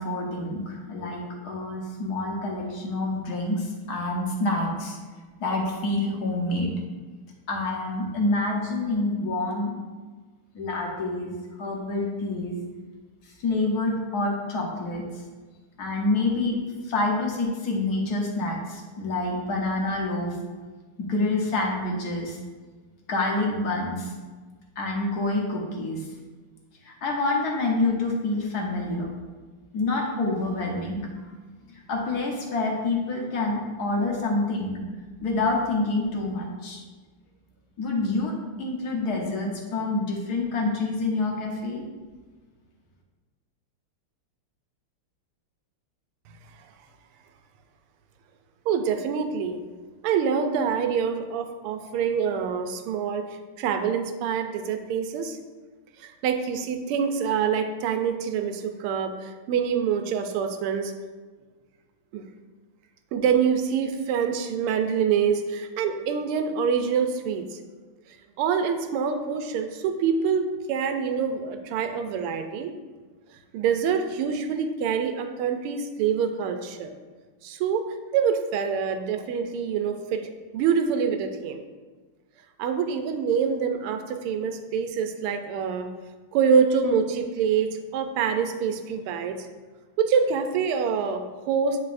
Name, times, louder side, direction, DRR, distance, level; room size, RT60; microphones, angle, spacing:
voice 1, 0.0-5.0 5.4-6.7 7.5-9.7 10.5-12.6 13.2-15.0 15.8-20.3 21.0-22.4 23.1-24.1 24.8-26.1 26.8-29.2 29.7-31.3 31.7-34.8 35.2-36.8 37.8-38.3 38.6-41.8, left 2 dB, 55° left, -1 dB, 1.3 m, -27 dB
voice 2, 48.7-49.6 50.0-53.3 53.6-55.4 56.0-60.9 62.1-62.3 63.1-67.6 68.4-72.7 73.5-76.9 77.4-77.8 78.1-81.6 82.6-85.9 86.3-89.5 90.0-91.8, right 6 dB, 85° right, 6 dB, 1.5 m, -26 dB
9.5 x 4.0 x 2.5 m, 1.4 s
omnidirectional pair, 2.4 m